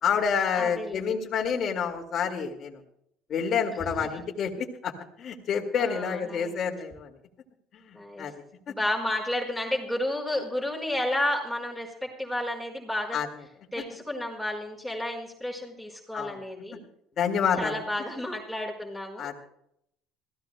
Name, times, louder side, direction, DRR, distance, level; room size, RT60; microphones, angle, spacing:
voice 1, 0.0-2.8 3.3-4.9 5.2-7.1 8.2-8.3 13.1-13.3 16.1-16.4 17.2-17.7 19.2-19.4, left 7 dB, 45° left, -1 dB, 2.1 m, -28 dB
voice 2, 0.5-1.2 4.0-4.1 5.8-6.5 7.9-8.3 8.7-13.2 13.7-16.8 17.6-19.3, left 1 dB, 5° right, -2 dB, 4.7 m, -31 dB
27.5 x 15.5 x 2.3 m, 0.74 s
supercardioid pair, 105°, 0 cm